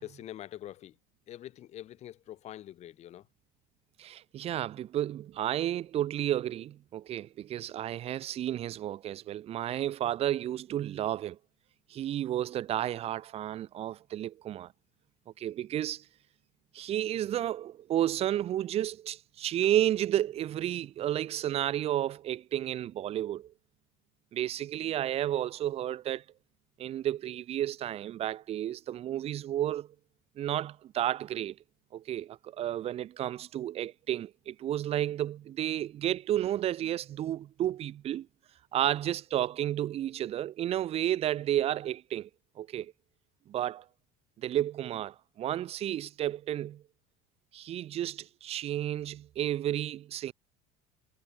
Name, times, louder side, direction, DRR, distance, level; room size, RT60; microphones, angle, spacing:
voice 1, 0.0-1.0 1.3-3.3 38.8-38.9, left 12 dB, 35° left, 2.0 m, -45 dB
voice 2, 4.0-11.4 11.9-14.7 15.4-16.0 16.7-23.5 24.3-26.2 26.8-29.9 30.4-31.6 31.9-38.3 38.7-42.3 42.6-42.9 43.5-43.8 44.4-46.8 47.5-50.3, right 12 dB, 30° right, 1.3 m, -32 dB
cardioid pair, 180°, 19 cm